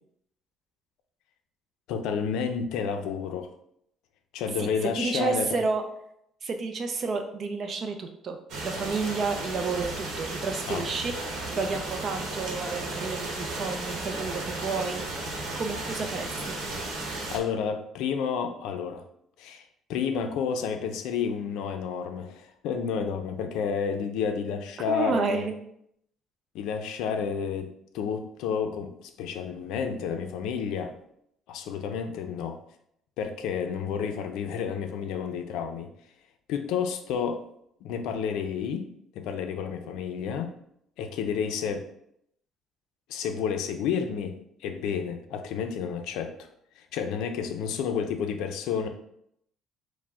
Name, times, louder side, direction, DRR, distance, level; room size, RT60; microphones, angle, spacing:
voice 1, 1.9-3.5 4.3-5.6 10.7-10.8 17.3-19.0 19.4-25.5 26.5-30.9 31.5-32.6 33.2-35.9 36.5-37.4 37.8-38.9 39.1-40.5 41.0-41.8 43.1-46.5 46.8-48.9, left 7 dB, 80° left, 7 dB, 0.5 m, -30 dB
voice 2, 4.6-5.8 6.4-11.1 11.6-15.0 15.5-16.3 24.9-25.5, right 4 dB, 35° right, 5 dB, 0.4 m, -30 dB
sound 1, 8.5-17.4, right 2 dB, 70° right, 0.9 m, -34 dB
4.7 x 2.1 x 3.5 m, 0.73 s
cardioid pair, 180°, 0 cm